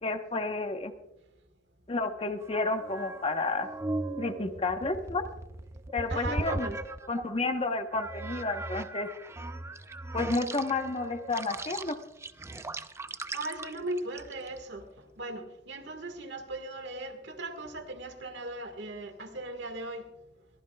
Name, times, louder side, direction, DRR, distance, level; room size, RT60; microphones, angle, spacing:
voice 1, 0.0-0.9 1.9-3.7 4.2-5.2 5.9-6.8 7.1-9.1 10.1-12.0, left 3 dB, 30° left, 7 dB, 1.0 m, -31 dB
sound 1, 2.4-7.4 7.9-14.6, right 2 dB, 15° right, 0.4 m, -38 dB
voice 2, 6.1-6.8 13.3-14.8 15.2-20.0, right 2 dB, 75° right, 7 dB, 1.7 m, -38 dB
23.0 x 14.5 x 2.3 m, 0.89 s
head